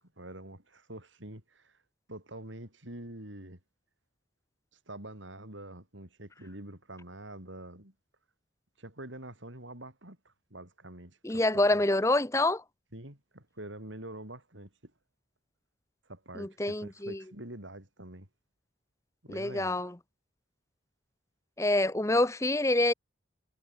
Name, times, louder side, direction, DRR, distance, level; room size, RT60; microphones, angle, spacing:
voice 1, 0.0-1.8 2.1-3.6 4.9-7.9 8.8-11.8 12.9-14.9 16.0-18.3 19.2-19.8, right 1 dB, 75° right, 7.1 m, -46 dB
voice 2, 11.2-12.6 16.4-17.2 19.3-19.9 21.6-22.9, left 2 dB, 15° left, 0.8 m, -26 dB
head